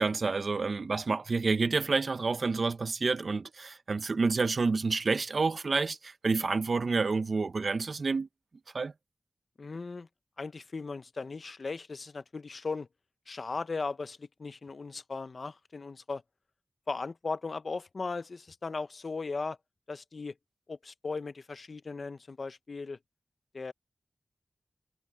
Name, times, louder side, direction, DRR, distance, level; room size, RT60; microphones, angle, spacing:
voice 1, 0.0-8.3 8.7-8.9, right 4 dB, 75° right, 1.1 m, -29 dB
voice 2, 9.6-10.1 10.4-12.9 13.3-16.2 16.9-19.6 19.9-20.3 20.7-23.0 23.5-23.7, left 4 dB, 70° left, 0.9 m, -37 dB
cardioid pair, 40°, 0 cm